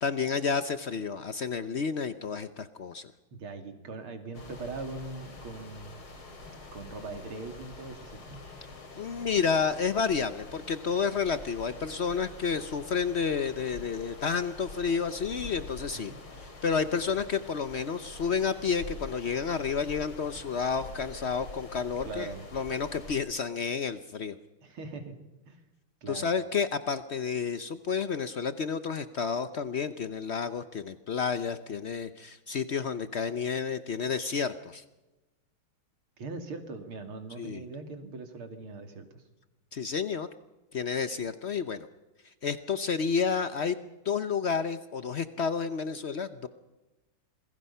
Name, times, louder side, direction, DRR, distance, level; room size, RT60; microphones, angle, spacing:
voice 1, 0.0-3.1 9.0-24.4 26.1-34.8 37.4-37.6 39.7-40.3 40.7-41.9 42.4-46.5, left 6 dB, 85° left, 11 dB, 0.5 m, -30 dB
voice 2, 3.3-6.1 6.7-8.4 16.1-16.2 22.0-22.4 24.6-25.1 25.5-25.6 26.0-26.3 36.2-39.2 41.2-41.3, right 3 dB, 70° right, 6 dB, 3.4 m, -41 dB
sound 1, 4.3-23.2, left 3 dB, 70° left, 4.2 m, -46 dB
27.5 x 22.0 x 5.6 m, 1.1 s
omnidirectional pair, 2.4 m